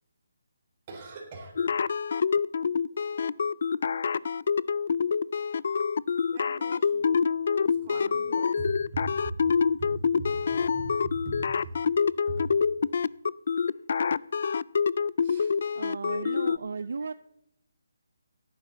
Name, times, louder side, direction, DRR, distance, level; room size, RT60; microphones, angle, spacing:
voice 1, 0.9-1.6 6.3-7.2 7.6-11.8 12.3-12.5 15.2-15.5 16.1-16.4 17.0-17.1, right 2 dB, 30° right, 0 dB, 3.7 m, -40 dB
sound 1, 1.6-16.6, left 6 dB, 55° left, 0.3 m, -26 dB
voice 2, 15.7-17.1, right 4 dB, 70° right, 14 dB, 0.4 m, -35 dB
16.5 x 9.0 x 4.0 m, 0.82 s
hypercardioid pair, 165°, 0 cm